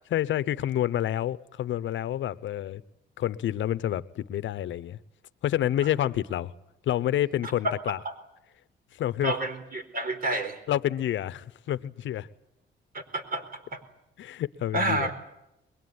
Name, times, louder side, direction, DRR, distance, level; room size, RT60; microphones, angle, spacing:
voice 1, 0.1-2.8 3.2-5.0 5.4-6.5 6.8-8.0 8.9-9.3 10.7-12.3 14.2-15.1, left 12 dB, 70° left, 0.9 m, -28 dB
voice 2, 9.2-10.6 12.9-13.4 13.7-13.8 14.7-15.1, right 2 dB, 45° right, 4.4 m, -29 dB
22.5 x 22.0 x 9.7 m
cardioid pair, 90°, 20 cm